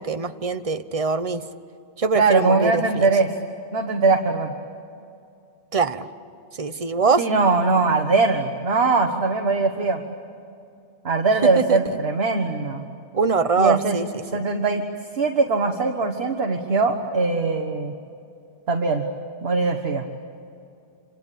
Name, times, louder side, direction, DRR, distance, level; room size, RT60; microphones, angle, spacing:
voice 1, 0.0-1.4 2.0-3.1 5.7-6.1 6.6-7.2 11.4-12.0 13.1-14.4, right 4 dB, 35° right, 11 dB, 0.9 m, -23 dB
voice 2, 2.1-3.3 3.7-4.5 7.2-10.0 11.0-12.8 13.6-14.0 14.3-14.8 15.1-17.9 18.7-19.0 19.4-20.0, right 3 dB, 60° right, 4 dB, 1.6 m, -21 dB
26.5 x 26.0 x 8.4 m, 2.6 s
omnidirectional pair, 1.2 m